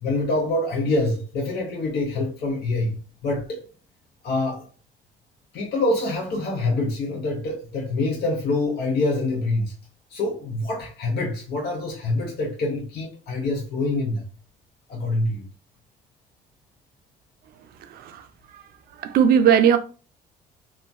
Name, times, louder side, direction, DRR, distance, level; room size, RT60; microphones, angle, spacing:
voice 1, 0.0-3.6 4.2-4.7 5.5-9.7 10.1-14.2 14.9-15.5, left 2 dB, 70° left, 1.0 m, -25 dB
voice 2, 19.0-19.8, right 8 dB, 65° right, 0.5 m, -18 dB
3.0 x 2.2 x 2.5 m
cardioid pair, 110°, 17 cm